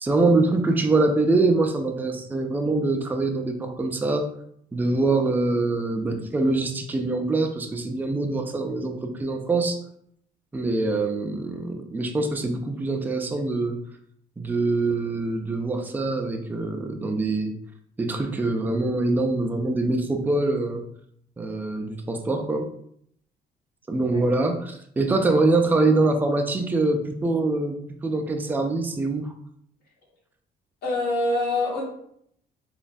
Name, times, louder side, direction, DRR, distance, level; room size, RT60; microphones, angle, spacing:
voice 1, 0.0-4.3 4.7-9.8 10.5-13.8 14.4-17.5 18.0-20.8 21.4-22.6 23.9-29.3, right 2 dB, 10° right, 4 dB, 0.3 m, -24 dB
voice 2, 30.8-31.8, left 2 dB, 65° left, -6 dB, 1.4 m, -25 dB
3.1 x 2.2 x 2.5 m, 0.69 s
cardioid pair, 110°, 17 cm